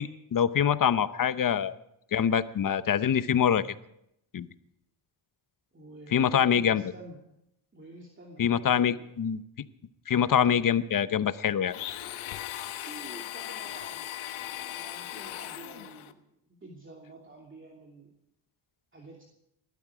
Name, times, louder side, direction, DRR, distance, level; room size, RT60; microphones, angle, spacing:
voice 1, 0.0-1.7 2.1-3.7 4.3-4.5 6.1-6.8 8.4-9.4 10.1-11.8, left 8 dB, 45° left, 14 dB, 0.9 m, -25 dB
voice 2, 5.7-7.2 7.7-9.1 12.8-16.2 16.6-18.1 18.9-19.2, right 2 dB, 25° right, -1 dB, 2.8 m, -48 dB
Domestic sounds home sounds, 11.7-16.1, left 12 dB, 85° left, 1.1 m, -38 dB
20.0 x 13.0 x 5.0 m, 0.79 s
cardioid pair, 80°, 47 cm